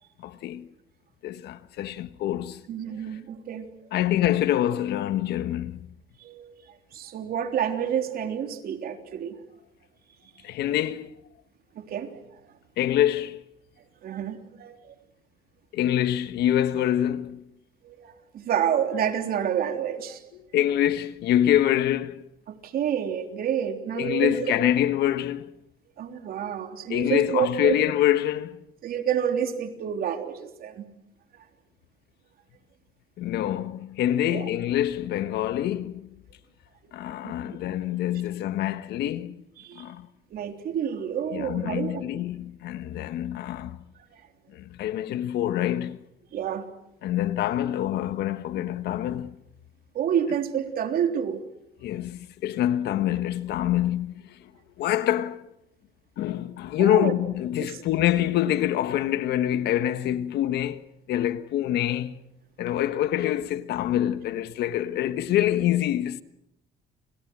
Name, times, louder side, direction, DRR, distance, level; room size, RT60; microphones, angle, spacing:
voice 1, 0.2-0.7 1.2-2.6 3.9-5.9 10.4-11.2 12.8-13.4 15.7-17.4 20.5-22.3 23.9-25.5 26.9-28.6 33.2-36.1 36.9-39.4 39.7-40.1 41.3-43.8 44.5-46.0 47.0-49.4 51.8-54.4 54.8-55.5 56.2-62.2 62.6-66.2, left 12 dB, 75° left, 1.5 m, -26 dB
voice 2, 2.7-3.7 6.2-6.5 6.9-9.4 10.4-10.5 11.8-12.3 14.0-14.8 17.8-20.2 22.5-24.5 26.0-27.8 28.8-30.9 34.2-34.5 37.2-37.6 39.6-39.9 40.3-42.0 46.3-46.7 50.0-51.4 56.8-57.1, right 9 dB, 60° right, 3.6 m, -29 dB
29.5 x 28.0 x 6.3 m
cardioid pair, 110°, 17 cm